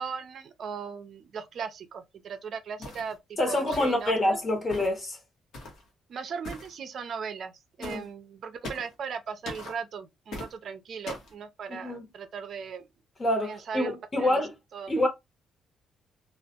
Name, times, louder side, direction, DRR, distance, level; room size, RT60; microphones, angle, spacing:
voice 1, 0.0-4.4 6.1-7.5 7.8-12.9 13.4-14.4 14.7-14.9, right 6 dB, 60° right, 0.4 m, -38 dB
sound 1, 2.8-3.1 3.7-4.1 4.7-5.0 5.5-5.8 6.4-6.7 7.8-8.1 8.6-8.9 9.5-9.8 10.3-10.5 11.1-11.3, left 2 dB, 75° left, 1.1 m, -40 dB
voice 2, 3.4-5.2 7.8-8.0 11.7-12.0 13.2-14.5 14.9-15.1, left 1 dB, 35° left, 1.1 m, -26 dB
2.4 x 2.1 x 2.7 m
cardioid pair, 90°, 0 cm